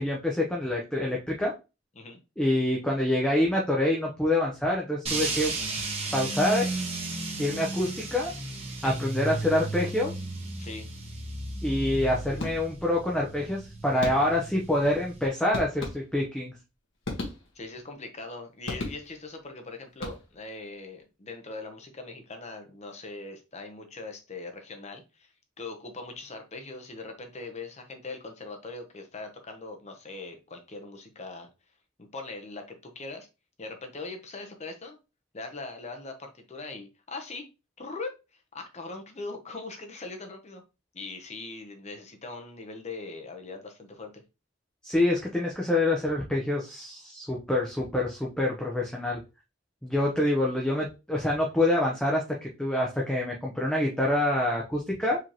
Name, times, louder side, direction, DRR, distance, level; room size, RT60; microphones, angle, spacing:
voice 1, 0.0-1.5 2.4-5.5 6.1-6.7 7.4-8.3 8.8-10.1 11.6-16.6 44.8-49.2 49.8-55.2, left 1 dB, 5° left, -2 dB, 0.8 m, -26 dB
sound 1, 5.1-15.3, right 2 dB, 30° right, 1.3 m, -34 dB
sound 2, 12.4-13.0 14.0-14.6 15.5-16.4 17.0-17.8 18.7-19.4 19.9-20.6, left 2 dB, 65° left, 1.6 m, -37 dB
voice 2, 17.5-31.5 32.0-33.3 33.6-35.0 35.3-37.5 37.8-40.6 40.9-44.2, left 3 dB, 35° left, 5 dB, 0.9 m, -41 dB
4.9 x 3.5 x 3.0 m, 0.28 s
head